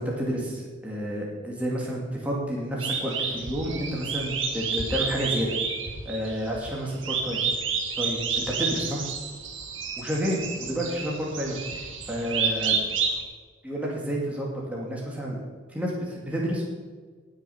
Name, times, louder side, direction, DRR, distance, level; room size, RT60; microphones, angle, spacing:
voice 1, 0.0-5.5 6.1-7.4 8.0-9.0 10.0-12.8 13.6-15.4 15.7-16.6, equal, 5° right, -4 dB, 2.0 m, -30 dB
sound 1, 2.8-13.2, right 5 dB, 70° right, 1.6 m, -30 dB
18.0 x 6.5 x 5.6 m, 1.5 s
head